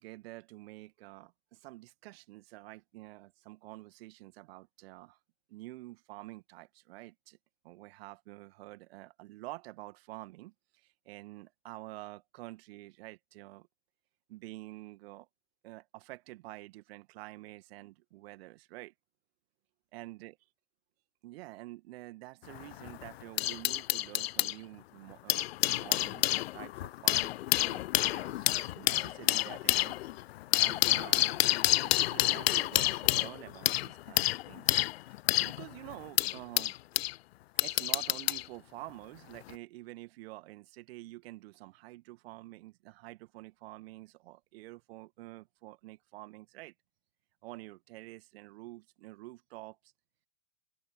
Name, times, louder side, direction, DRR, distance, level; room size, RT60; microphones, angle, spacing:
voice 1, 0.0-5.2 5.5-7.4 7.6-10.5 11.1-13.7 14.3-15.3 15.6-18.9 19.9-20.4 21.2-27.4 27.6-27.8 28.1-30.0 30.6-34.8 35.4-36.7 37.6-46.7 47.4-49.8, right 19 dB, 45° right, 2.1 m, -48 dB
sound 1, 22.4-24.5 25.1-37.1 37.6-38.5 39.3-39.5, left 16 dB, 50° left, 0.8 m, -29 dB
open air
figure-of-eight pair, 105°, 40 cm